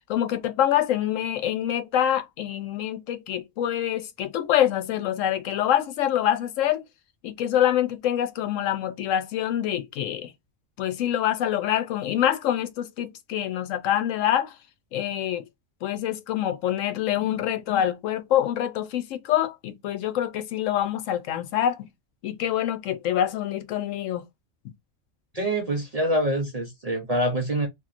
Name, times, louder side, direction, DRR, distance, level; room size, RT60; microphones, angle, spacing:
voice 1, 0.1-6.9 7.2-10.3 10.8-14.5 14.9-15.5 15.8-21.8 22.2-24.2, left 11 dB, 85° left, 1.0 m, -25 dB
voice 2, 25.3-27.7, right 1 dB, 50° right, 0.5 m, -25 dB
2.9 x 2.7 x 2.5 m
omnidirectional pair, 1.3 m